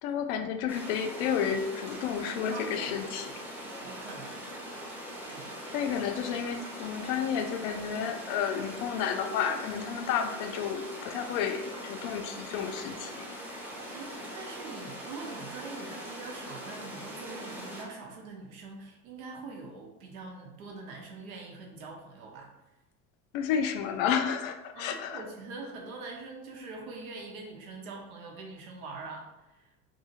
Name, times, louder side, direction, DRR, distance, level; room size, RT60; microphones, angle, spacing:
voice 1, 0.0-3.2 5.7-13.3 23.3-25.3, left 7 dB, 55° left, 7 dB, 0.5 m, -31 dB
sound 1, 0.7-17.8, equal, 5° right, 0.7 m, -42 dB
voice 2, 2.5-3.3 3.8-4.4 5.3-5.5 13.9-22.5 24.7-29.7, right 3 dB, 75° right, 1 dB, 0.8 m, -43 dB
2.7 x 2.6 x 2.7 m, 1.0 s
hypercardioid pair, 75°, 43 cm